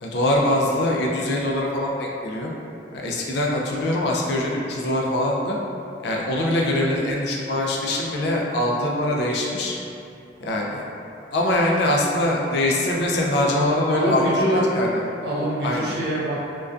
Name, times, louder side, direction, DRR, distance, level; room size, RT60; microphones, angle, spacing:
voice 1, 0.0-2.5 2.9-5.6 6.0-9.7 10.4-10.8 11.3-14.2 14.5-15.0 15.6-15.9, left 1 dB, 60° left, -2 dB, 0.3 m, -23 dB
voice 2, 13.9-14.6 15.2-16.5, right 1 dB, 65° right, -7 dB, 0.6 m, -24 dB
2.4 x 2.2 x 2.3 m, 2.7 s
head